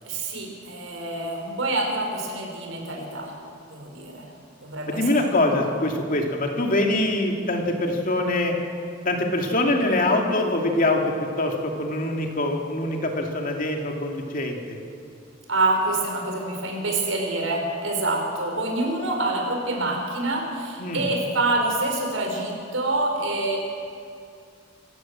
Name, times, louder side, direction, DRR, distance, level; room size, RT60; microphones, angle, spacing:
voice 1, 0.0-3.3 3.7-4.3 4.6-5.0 5.5-5.7 15.5-23.6, right 2 dB, 85° right, 1 dB, 5.4 m, -26 dB
voice 2, 4.9-8.5 9.0-14.8 20.8-21.1, left 2 dB, 45° left, 2 dB, 2.7 m, -24 dB
26.0 x 16.0 x 7.6 m, 2.4 s
head